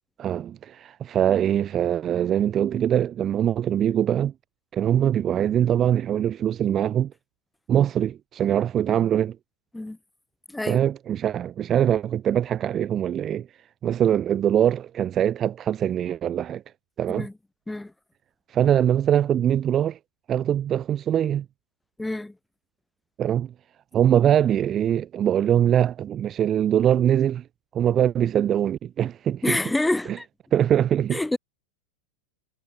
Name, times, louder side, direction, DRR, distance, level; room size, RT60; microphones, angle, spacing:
voice 1, 0.2-4.3 4.7-7.1 7.7-9.4 10.7-13.5 13.8-16.6 17.0-17.3 18.5-20.0 20.3-21.4 23.2-23.5 23.9-27.4 27.7-29.6 30.1-30.2 30.5-31.2, right 10 dB, 30° right, 0.8 m, -22 dB
voice 2, 10.5-10.8 17.1-17.3 17.7-17.9 22.0-22.3 29.4-30.3 31.1-31.4, left 2 dB, 5° left, 2.0 m, -27 dB
figure-of-eight pair, 90°, 0 cm